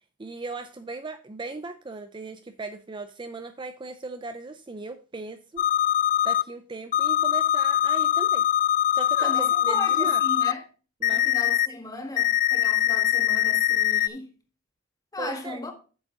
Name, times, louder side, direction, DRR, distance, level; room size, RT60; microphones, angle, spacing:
voice 1, 0.2-5.6 6.2-8.5 8.9-10.2 11.0-11.3 15.2-15.6, right 3 dB, 25° right, 0.5 m, -37 dB
sound 1, 5.6-6.4 6.9-10.5 11.0-11.7 12.2-14.1, left 11 dB, 40° left, 0.3 m, -22 dB
voice 2, 9.2-10.6 11.1-14.3 15.1-15.7, left 2 dB, 20° left, 1.6 m, -36 dB
8.1 x 7.2 x 3.8 m
head